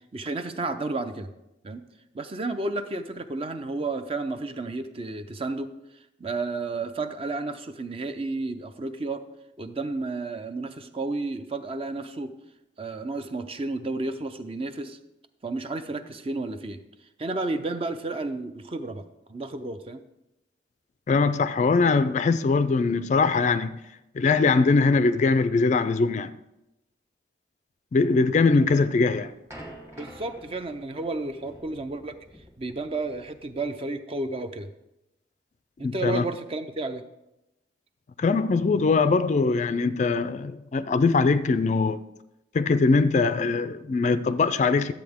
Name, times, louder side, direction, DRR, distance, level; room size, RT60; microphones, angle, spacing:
voice 1, 0.1-1.3 1.6-1.8 2.1-5.7 6.2-9.2 9.6-12.3 12.8-15.0 15.4-16.8 17.2-20.0 30.0-32.2 32.6-34.7 35.8-37.0, right 3 dB, 30° right, 0.5 m, -32 dB
voice 2, 21.1-23.7 24.2-26.3 27.9-29.3 35.8-36.3 38.2-42.0 42.5-44.9, left 4 dB, 40° left, 0.3 m, -22 dB
sound 1, 28.7-33.7, right 1 dB, 15° right, 1.3 m, -48 dB
11.5 x 7.7 x 3.5 m
head